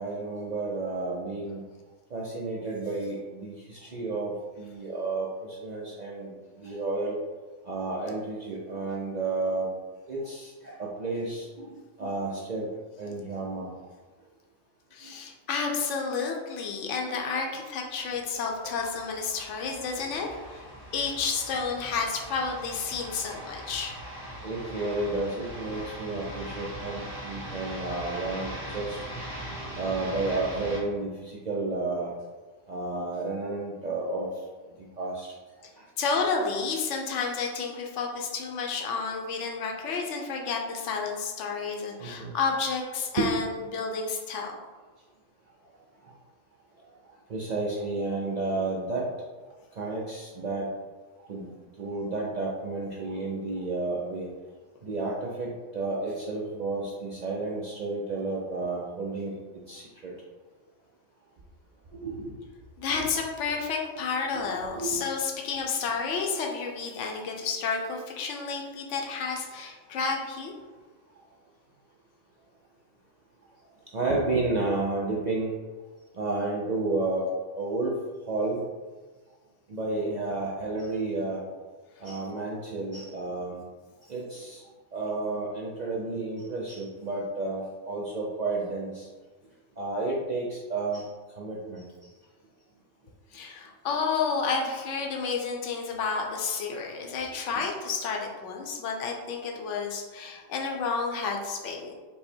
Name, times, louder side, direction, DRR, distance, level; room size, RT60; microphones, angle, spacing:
voice 1, 0.0-1.6 2.1-7.2 7.6-9.7 10.1-11.7 12.0-12.7 13.0-13.7 15.0-15.1 18.6-18.7 24.4-29.0 29.8-32.1 32.7-34.3 35.0-35.3 42.0-42.3 43.2-43.3 47.3-49.1 49.7-50.7 51.3-51.5 51.8-54.3 54.8-59.3 59.7-60.1 61.9-62.4 62.9-63.0 64.3-64.5 64.7-65.0 73.9-75.5 76.1-77.3 77.6-77.9 78.3-78.6 79.7-81.4 82.0-83.6 84.1-84.6 84.9-89.1 89.8-91.1 91.4-91.9, right 3 dB, 50° right, -4 dB, 0.5 m, -31 dB
voice 2, 14.9-20.6 20.9-23.9 36.0-44.5 62.8-70.5 93.3-101.9, left 5 dB, 75° left, 1 dB, 1.0 m, -31 dB
sound 1, 18.2-30.8, right 1 dB, 80° right, 1.9 m, -40 dB
5.3 x 2.1 x 4.3 m, 1.3 s
omnidirectional pair, 1.3 m